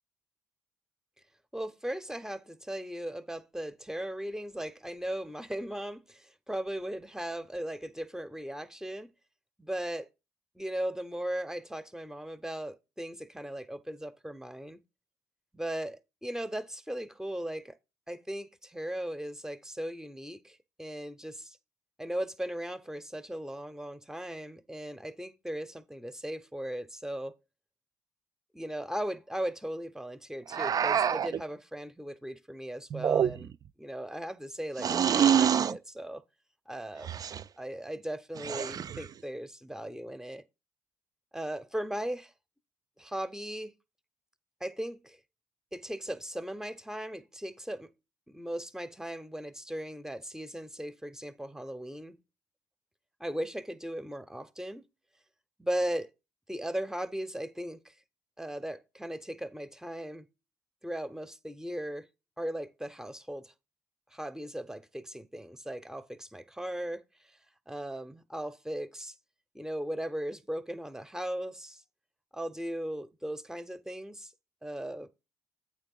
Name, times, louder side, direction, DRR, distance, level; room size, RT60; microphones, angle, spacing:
voice 1, 1.5-9.1 9.6-10.1 10.6-14.8 15.5-17.8 18.1-21.6 22.0-27.3 28.5-33.5 33.8-36.2 36.7-37.2 37.6-40.4 41.3-42.3 43.0-43.7 44.6-45.2 45.7-47.9 48.3-52.2 53.2-54.9 55.6-56.1 56.5-57.9 58.4-60.3 60.8-62.1 62.4-63.5 64.1-67.4 67.7-69.2 69.5-71.8 72.3-74.3 74.6-75.1, right 1 dB, 5° right, 0.7 m, -37 dB
sound 1, 30.5-31.4 32.9-33.7 34.8-35.8 37.0-37.4 38.4-39.1, right 8 dB, 45° right, 0.4 m, -26 dB
8.7 x 3.7 x 5.4 m
hypercardioid pair, 50°, 9 cm